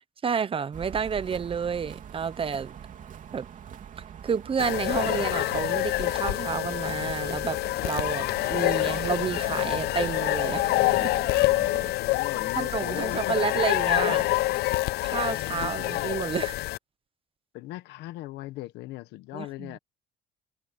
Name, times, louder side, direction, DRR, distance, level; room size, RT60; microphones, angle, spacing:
voice 1, 0.2-2.7 3.3-3.5 4.2-7.6 7.8-10.7 11.0-11.1 12.4-14.3 15.0-16.6 19.3-19.8, right 6 dB, 30° right, 1.0 m, -30 dB
sound 1, 0.7-11.9, right 8 dB, 50° right, 3.3 m, -43 dB
sound 2, 4.6-16.8, left 19 dB, 70° left, 0.4 m, -27 dB
voice 2, 8.4-9.0 11.6-13.4 15.2-16.0 17.5-19.8, left 17 dB, 90° left, 1.3 m, -39 dB
cardioid pair, 110°, 17 cm